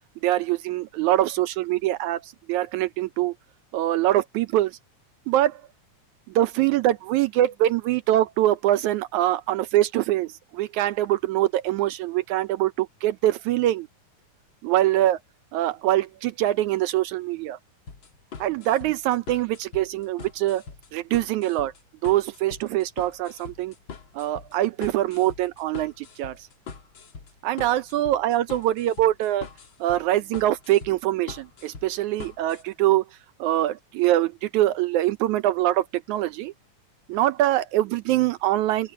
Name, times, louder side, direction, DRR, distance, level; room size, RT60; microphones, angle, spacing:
voice 1, 0.2-3.3 3.7-4.8 5.3-5.6 6.3-13.9 14.6-15.2 15.5-17.6 18.4-20.6 20.9-21.7 22.0-23.7 24.1-26.4 27.4-29.5 29.8-33.0 33.4-36.5 37.1-38.9, right 14 dB, 75° right, 1.9 m, -23 dB
sound 1, 17.9-32.6, left 5 dB, 40° left, 2.3 m, -42 dB
open air
omnidirectional pair, 3.7 m